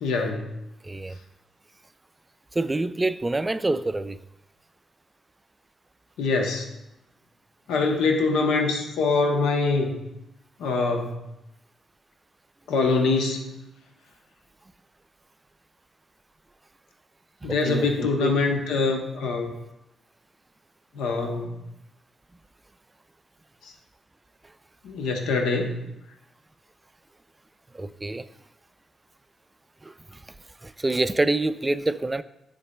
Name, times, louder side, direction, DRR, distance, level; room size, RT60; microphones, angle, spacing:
voice 1, 0.0-0.5 6.2-6.7 7.7-10.0 10.6-11.2 12.7-13.6 17.4-19.5 20.9-21.5 24.8-25.7, left 3 dB, 80° left, 3 dB, 0.8 m, -24 dB
voice 2, 0.8-1.2 2.5-4.2 17.4-18.3 27.7-28.3 29.8-30.2 30.6-32.2, right 2 dB, 25° right, 13 dB, 0.4 m, -27 dB
10.5 x 4.0 x 2.2 m, 0.91 s
hypercardioid pair, 45°, 0 cm